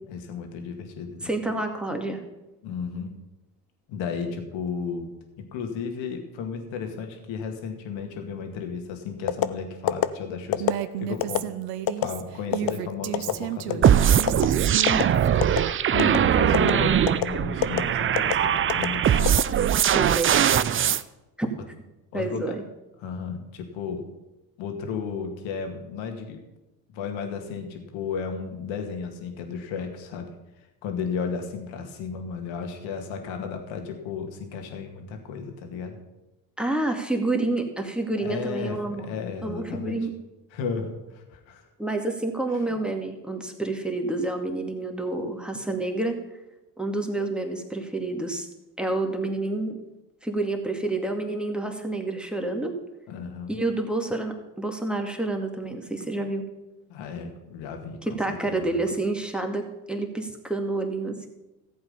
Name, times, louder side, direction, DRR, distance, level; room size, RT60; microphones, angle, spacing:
voice 1, 0.1-1.3 2.6-3.1 3.9-5.0 5.4-10.7 11.0-11.5 12.0-14.5 15.9-19.4 22.1-22.6 23.0-24.0 24.6-26.4 26.9-30.3 30.8-36.0 38.2-40.1 40.5-41.7 42.5-42.8 43.5-43.6 53.1-53.6 56.9-58.8, left 6 dB, 65° left, 4 dB, 2.2 m, -34 dB
voice 2, 1.2-2.2 14.9-15.3 19.9-20.4 21.4-21.5 22.1-22.5 36.6-39.1 39.4-40.1 41.8-46.2 46.8-48.5 48.8-49.8 50.2-52.8 53.5-56.4 58.1-61.3, right 2 dB, ahead, 3 dB, 2.3 m, -28 dB
sound 1, 9.3-9.5 9.9-10.1 10.5-10.8 11.2-11.4 11.9-12.1 12.5-12.7 13.1-13.3 13.7-13.9 14.3-14.5 14.9-15.0 15.4-15.7 16.0-16.2 16.5-16.7 17.1-17.3 17.6-17.8 18.2-18.3 18.7-18.9 19.3-19.9 20.3-20.6, left 12 dB, 50° left, 0.7 m, -23 dB
Female speech woman speaking, 10.6-15.7, right 13 dB, 75° right, 0.8 m, -33 dB
sound 2, 13.8-21.0, right 9 dB, 25° right, 0.5 m, -21 dB
14.5 x 8.0 x 5.5 m, 1.0 s
hypercardioid pair, 60°, 49 cm